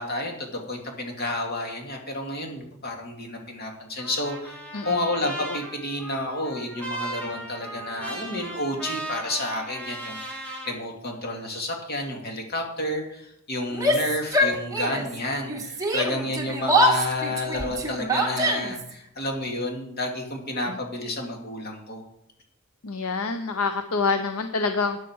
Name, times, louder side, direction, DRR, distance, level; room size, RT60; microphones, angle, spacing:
voice 1, 0.0-22.0, left 1 dB, 45° left, 2 dB, 2.4 m, -30 dB
Trumpet, 4.0-10.7, right 2 dB, 5° left, 2.8 m, -37 dB
voice 2, 4.7-5.1 5.4-5.6 20.7-20.8 22.8-25.0, left 4 dB, 75° left, 8 dB, 0.8 m, -27 dB
Yell, 13.7-15.2 15.4-18.9, equal, 15° right, 1.6 m, -24 dB
13.0 x 9.3 x 4.7 m, 0.74 s
head